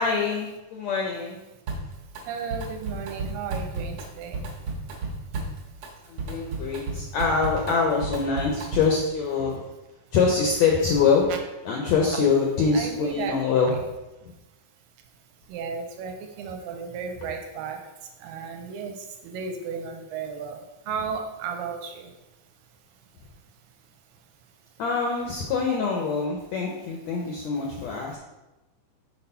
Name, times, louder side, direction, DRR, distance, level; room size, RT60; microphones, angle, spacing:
voice 1, 0.0-1.4 6.1-9.6 10.1-11.3 11.6-13.7 24.8-28.2, left 5 dB, 80° left, 0 dB, 1.6 m, -24 dB
Drum kit, 1.7-2.2 2.5-9.0, right 3 dB, 60° right, 1.8 m, -33 dB
voice 2, 2.3-4.4 12.7-13.6 15.5-17.8 18.2-20.6 20.9-22.1, right 6 dB, 85° right, 3 dB, 2.3 m, -34 dB
6.4 x 4.2 x 5.6 m, 1.0 s
omnidirectional pair, 4.1 m